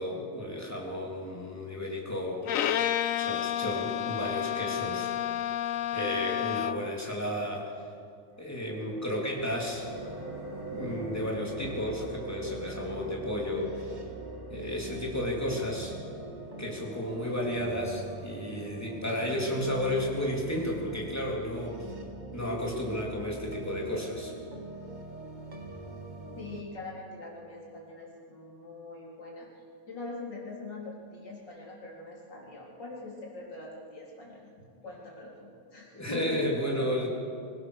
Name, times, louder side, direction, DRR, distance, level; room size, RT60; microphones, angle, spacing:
voice 1, 0.0-2.8 3.2-5.1 5.9-7.7 8.4-9.8 10.7-14.0 14.5-15.9 16.6-21.8 22.3-24.3 35.9-37.1, left 1 dB, 5° left, -2 dB, 3.4 m, -33 dB
Bowed string instrument, 2.4-7.0, left 11 dB, 90° left, 0.7 m, -30 dB
sound 1, 8.3-19.7, right 1 dB, 70° right, 4.8 m, -46 dB
sound 2, 9.8-26.6, right 3 dB, 25° right, 1.7 m, -43 dB
voice 2, 26.4-29.5 29.9-36.4, left 2 dB, 60° left, -3 dB, 4.6 m, -43 dB
25.5 x 16.5 x 6.6 m, 2.3 s
omnidirectional pair, 2.2 m